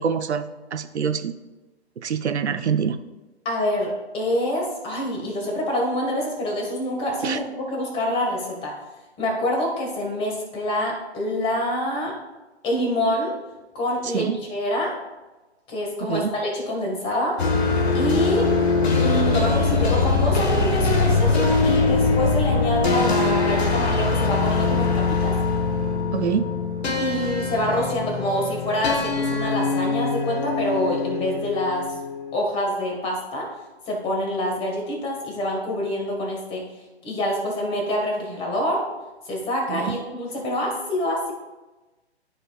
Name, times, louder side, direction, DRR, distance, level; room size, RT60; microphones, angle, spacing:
voice 1, 0.0-1.3 2.0-3.0 7.2-7.4 14.1-14.3 16.1-16.3 26.1-26.5 39.7-39.9, right 7 dB, 75° right, 9 dB, 0.7 m, -25 dB
voice 2, 3.4-8.7 9.2-12.1 12.6-13.3 13.7-14.9 15.7-17.4 17.9-18.5 19.0-25.3 27.0-31.9 32.3-33.5 33.9-36.6 37.0-38.8 39.3-41.3, left 1 dB, 15° left, -1 dB, 1.7 m, -26 dB
sound 1, 17.4-32.3, left 4 dB, 70° left, 1.6 m, -22 dB
12.5 x 5.2 x 2.4 m, 1.1 s
figure-of-eight pair, 135°, 33 cm